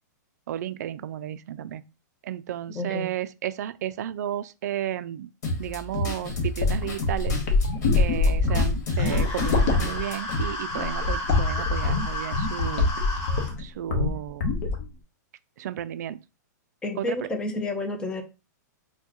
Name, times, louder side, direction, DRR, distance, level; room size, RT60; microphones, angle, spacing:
voice 1, 0.5-1.8 2.2-5.3 5.6-7.4 7.9-12.9 13.6-14.5 15.6-16.2 17.0-17.3, right 11 dB, 60° right, 0.4 m, -33 dB
voice 2, 2.8-3.1 16.8-18.2, left 2 dB, 10° left, 0.5 m, -30 dB
sound 1, 5.4-10.4, left 1 dB, 65° left, 1.3 m, -30 dB
sound 2, 6.2-13.6 13.9-14.1 14.4-14.9, left 3 dB, 45° left, 0.9 m, -24 dB
sound 3, 8.9-13.5, left 1 dB, 30° left, 1.4 m, -33 dB
4.4 x 2.2 x 2.8 m
hypercardioid pair, 160°, 10 cm